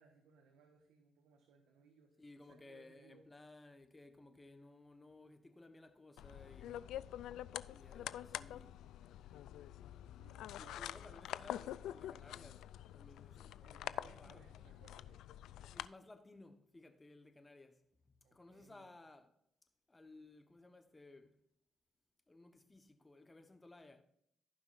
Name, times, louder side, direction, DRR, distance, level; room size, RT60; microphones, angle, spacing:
voice 1, 0.0-2.1 2.4-3.3 10.1-11.2 13.6-15.3 18.2-18.9, right 5 dB, 90° right, 1.3 m, -65 dB
voice 2, 2.2-6.9 7.7-8.8 10.6-14.4 15.6-19.3 19.9-21.4 22.3-24.0, left 2 dB, 20° left, 1.2 m, -59 dB
sound 1, 6.2-15.9, left 12 dB, 85° left, 0.3 m, -46 dB
15.5 x 5.7 x 2.6 m
cardioid pair, 90°, 0 cm